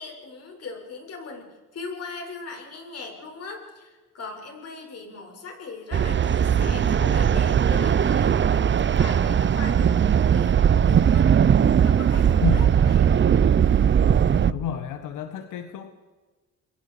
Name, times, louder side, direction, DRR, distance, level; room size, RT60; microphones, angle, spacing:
voice 1, 0.0-11.3 11.8-13.1, left 4 dB, 55° left, 2 dB, 6.8 m, -39 dB
sound 1, 5.9-14.5, right 8 dB, 40° right, 0.8 m, -19 dB
voice 2, 12.3-12.7 14.5-15.9, left 8 dB, 90° left, 8 dB, 1.5 m, -30 dB
29.5 x 22.5 x 5.1 m, 1.3 s
cardioid pair, 90°, 30 cm